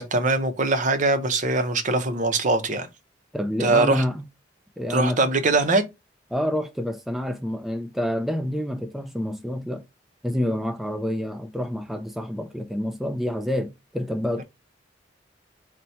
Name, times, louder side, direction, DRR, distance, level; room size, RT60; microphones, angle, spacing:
voice 1, 0.0-2.9 3.6-4.0 4.9-5.8, right 2 dB, 45° right, 0.7 m, -22 dB
voice 2, 3.3-4.3 4.8-5.2 6.3-9.8 10.2-14.4, equal, ahead, 0.4 m, -28 dB
4.1 x 2.2 x 4.3 m
head